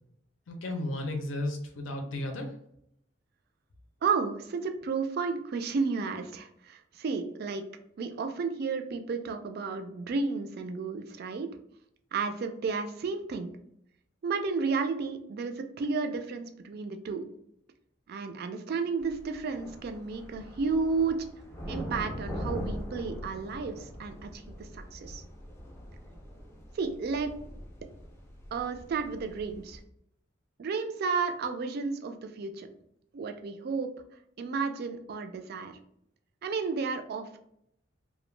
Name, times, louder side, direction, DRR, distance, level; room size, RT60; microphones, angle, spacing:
voice 1, 0.5-2.5, left 1 dB, 85° left, 3 dB, 0.5 m, -34 dB
voice 2, 4.0-7.6 8.0-11.5 12.1-13.5 14.2-17.3 18.1-21.3 21.7-23.7 24.0-24.4 24.9-25.2 26.8-27.3 28.5-29.8 30.6-32.7 33.1-33.9 34.4-35.7 36.4-37.4, right 4 dB, 55° right, 7 dB, 0.3 m, -32 dB
sound 1, 19.0-29.8, equal, 15° left, 0.4 m, -42 dB
2.3 x 2.1 x 3.1 m, 0.74 s
head